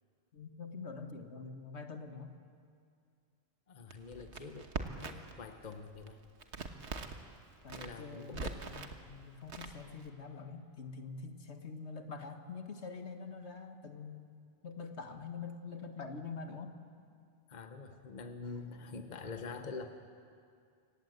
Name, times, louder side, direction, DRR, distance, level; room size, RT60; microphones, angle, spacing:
voice 1, 0.3-2.3 7.6-14.3 14.6-16.7, left 4 dB, 70° left, 6 dB, 1.7 m, -45 dB
voice 2, 3.7-6.2 7.7-8.7 17.5-19.9, left 4 dB, 40° left, 7 dB, 1.2 m, -45 dB
Crackle, 3.9-5.4 5.7-7.2 7.6-9.0 9.5-10.1, right 4 dB, 70° right, 1.6 m, -42 dB
27.0 x 17.0 x 8.0 m, 2.3 s
omnidirectional pair, 1.2 m